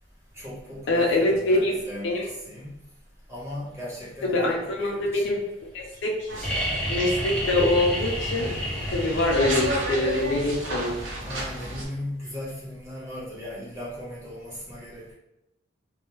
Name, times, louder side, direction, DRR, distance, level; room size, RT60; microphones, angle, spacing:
voice 1, 0.3-2.7 3.3-5.2 11.2-15.1, left 1 dB, 15° right, -8 dB, 0.9 m, -37 dB
voice 2, 0.9-1.7 2.0-2.3 4.2-5.4 5.7-6.3 6.9-8.5 8.9-11.0, left 1 dB, 70° left, 0 dB, 0.5 m, -24 dB
sound 1, 6.3-11.9, right 1 dB, 80° right, 0.7 m, -32 dB
sound 2, 6.4-10.2 11.9-12.0, equal, 5° left, 0.5 m, -30 dB
2.2 x 2.0 x 3.0 m, 0.89 s
head